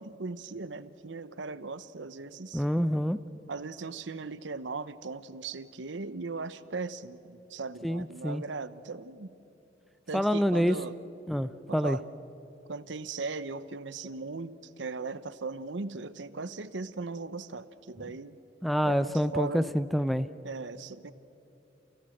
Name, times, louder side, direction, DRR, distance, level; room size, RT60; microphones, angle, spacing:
voice 1, 0.0-2.7 3.5-9.3 10.1-11.0 11.7-12.1 12.7-18.4 18.8-19.8 20.4-21.1, right 3 dB, 80° right, 15 dB, 0.8 m, -38 dB
voice 2, 2.5-3.2 7.8-8.4 10.1-10.8 11.3-12.0 18.6-20.3, equal, ahead, 13 dB, 0.4 m, -27 dB
28.5 x 16.5 x 7.8 m, 3.0 s
head